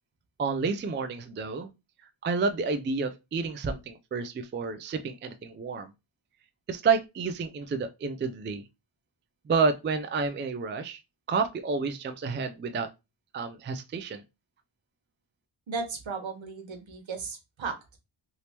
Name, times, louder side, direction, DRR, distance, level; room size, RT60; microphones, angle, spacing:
voice 1, 0.4-1.7 2.2-5.9 6.7-8.6 9.5-11.0 11.3-12.9 13.3-14.2, right 4 dB, 25° right, 0.3 m, -29 dB
voice 2, 15.7-18.0, right 4 dB, 65° right, 1.2 m, -36 dB
3.4 x 2.8 x 2.9 m
cardioid pair, 70°, 50 cm